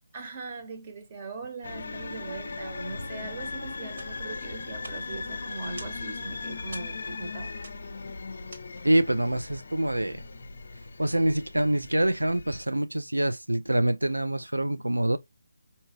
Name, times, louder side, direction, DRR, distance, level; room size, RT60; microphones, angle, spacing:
voice 1, 0.1-7.5, right 3 dB, 30° right, 0.9 m, -40 dB
sound 1, 1.6-12.6, left 3 dB, 55° left, 0.5 m, -38 dB
sound 2, 4.0-9.1, right 2 dB, 50° right, 1.2 m, -50 dB
voice 2, 8.8-10.3 11.0-15.2, right 1 dB, 85° right, 0.3 m, -25 dB
4.6 x 2.7 x 2.5 m
figure-of-eight pair, 150°, 0 cm